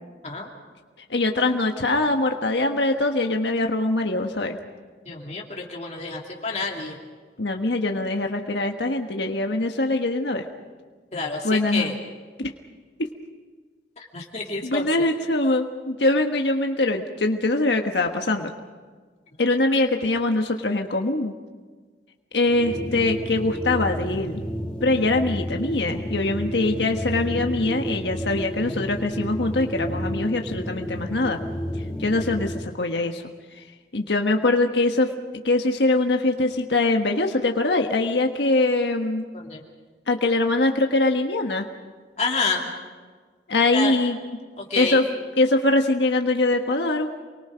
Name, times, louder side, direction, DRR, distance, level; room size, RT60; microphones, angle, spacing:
voice 1, 1.1-4.6 7.4-10.4 11.4-12.0 12.4-12.5 14.6-18.5 19.4-21.3 22.3-24.4 24.8-31.4 32.0-33.2 33.6-33.7 33.9-35.1 35.4-39.2 40.1-41.6 43.5-44.2 44.8-45.0 45.4-47.1, left 2 dB, 80° left, 3 dB, 1.4 m, -23 dB
voice 2, 5.1-7.0 11.1-11.9 14.0-15.0 39.3-39.6 42.2-42.7 43.7-43.9 44.6-45.0, left 4 dB, 40° left, -1 dB, 2.8 m, -29 dB
sound 1, 22.5-32.7, equal, 5° left, 1.1 m, -31 dB
29.0 x 23.0 x 5.1 m, 1.4 s
head